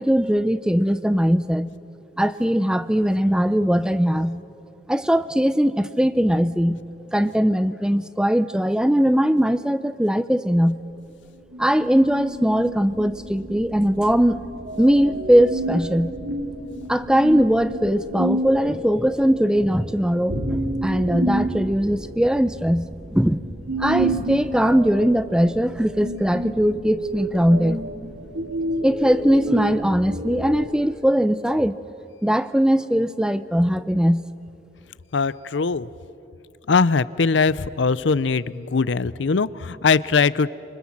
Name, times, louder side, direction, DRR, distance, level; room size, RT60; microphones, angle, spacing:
voice 1, 0.0-1.7 2.2-4.4 4.9-6.8 7.1-10.8 11.6-14.4 14.8-16.1 16.9-23.4 23.8-27.8 28.8-31.8 32.2-34.2, equal, 5° right, 14 dB, 0.5 m, -20 dB
sound 1, 11.5-30.7, right 1 dB, 80° right, 3.1 m, -30 dB
voice 2, 35.1-35.9 36.7-40.5, left 4 dB, 80° left, 18 dB, 0.6 m, -21 dB
27.0 x 24.5 x 7.4 m, 2.8 s
head